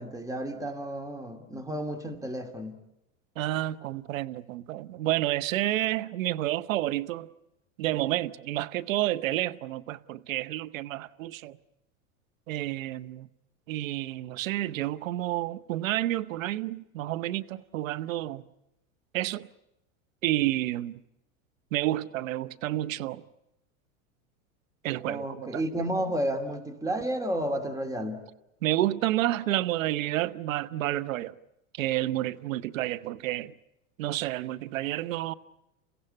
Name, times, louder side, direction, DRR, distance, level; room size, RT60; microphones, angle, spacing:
voice 1, 0.0-2.8 25.1-28.2, right 1 dB, 10° right, 2.6 m, -32 dB
voice 2, 3.4-7.3 7.8-11.6 12.5-13.3 13.7-18.4 19.1-19.5 20.2-21.0 21.7-23.2 24.8-25.6 28.6-31.4 31.7-33.5 34.0-35.3, right 15 dB, 80° right, 0.9 m, -30 dB
29.5 x 16.0 x 9.9 m
hypercardioid pair, 105°, 39 cm